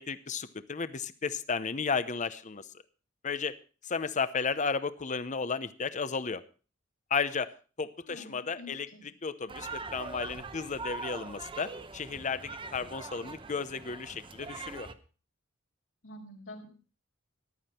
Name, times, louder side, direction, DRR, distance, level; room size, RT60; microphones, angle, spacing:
voice 1, 0.0-2.7 3.2-3.6 3.8-6.4 7.1-7.5 7.8-14.9, left 5 dB, 40° left, 13 dB, 0.8 m, -33 dB
voice 2, 8.1-9.0 16.0-16.7, left 1 dB, 75° left, -1 dB, 5.0 m, -47 dB
sound 1, 9.5-14.9, right 4 dB, 25° right, 0.9 m, -42 dB
14.5 x 12.0 x 4.3 m, 0.36 s
head